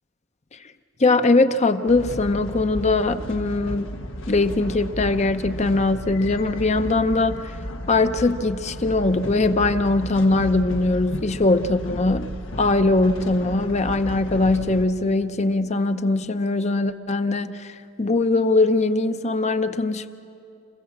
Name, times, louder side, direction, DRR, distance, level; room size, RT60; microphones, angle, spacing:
voice 1, 1.0-3.9 4.3-7.5 7.9-12.3 12.6-20.1, left 2 dB, 35° left, 10 dB, 0.7 m, -21 dB
sound 1, 1.9-14.9, equal, 90° left, 1.4 m, -34 dB
27.5 x 15.5 x 7.4 m, 2.6 s
head